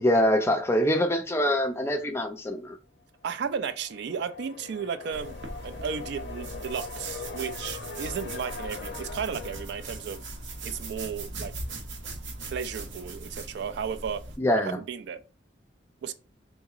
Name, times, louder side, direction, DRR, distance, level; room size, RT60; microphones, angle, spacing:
voice 1, 0.0-2.8 14.4-14.8, left 1 dB, 15° left, 0.4 m, -24 dB
voice 2, 3.2-5.4 5.6-10.2 10.6-11.5 12.4-14.2 14.5-15.2 16.0-16.1, right 7 dB, 60° right, 0.3 m, -34 dB
sound 1, 3.4-11.2, left 5 dB, 65° left, 0.6 m, -42 dB
sound 2, 5.1-14.4, right 2 dB, 85° right, 0.8 m, -39 dB
3.6 x 2.9 x 2.4 m
head